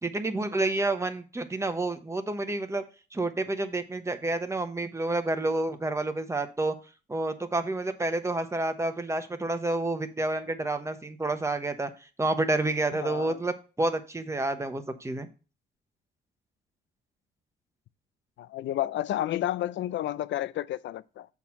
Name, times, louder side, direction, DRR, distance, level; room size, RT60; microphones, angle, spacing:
voice 1, 0.0-2.8 3.1-6.7 7.1-11.9 12.2-15.3, right 2 dB, 15° right, 1.0 m, -29 dB
voice 2, 13.0-13.4 18.4-21.3, left 13 dB, 70° left, 0.5 m, -31 dB
7.1 x 4.3 x 5.8 m
cardioid pair, 90°, 20 cm